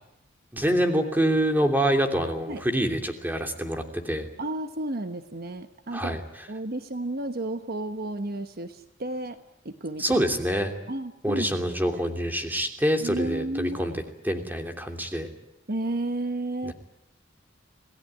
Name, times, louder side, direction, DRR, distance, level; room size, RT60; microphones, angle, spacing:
voice 1, 0.5-4.3 5.9-6.2 10.0-10.7 11.2-15.3 16.7-16.8, equal, 10° right, 5 dB, 3.0 m, -26 dB
voice 2, 4.4-6.2 6.5-9.4 9.6-10.2 10.9-12.1 13.0-13.8 15.7-16.7, right 1 dB, 55° right, 9 dB, 1.2 m, -32 dB
27.0 x 18.5 x 9.1 m, 0.86 s
head